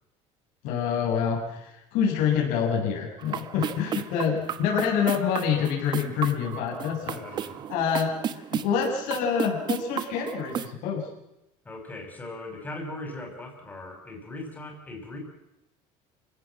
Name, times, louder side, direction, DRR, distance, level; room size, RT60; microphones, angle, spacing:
voice 1, 0.6-7.2 7.7-11.1, left 7 dB, 70° left, -2 dB, 7.7 m, -27 dB
sound 1, 3.2-10.7, right 9 dB, 30° right, 1.0 m, -34 dB
voice 2, 7.1-7.6 11.6-15.2, left 2 dB, 10° left, 3 dB, 6.0 m, -39 dB
29.5 x 17.0 x 7.6 m, 0.89 s
cardioid pair, 165°, 14 cm